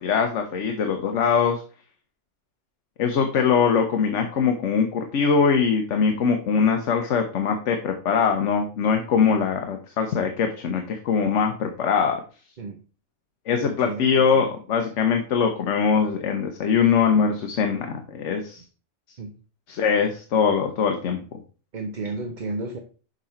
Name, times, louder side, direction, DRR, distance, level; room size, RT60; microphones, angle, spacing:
voice 1, 0.0-1.6 3.0-12.2 13.5-18.6 19.7-21.2, left 6 dB, 70° left, 5 dB, 1.1 m, -22 dB
voice 2, 13.5-14.4 19.2-19.3 20.4-20.6 21.7-22.8, right 3 dB, 45° right, 6 dB, 0.7 m, -33 dB
6.5 x 5.0 x 4.2 m, 0.38 s
omnidirectional pair, 1.3 m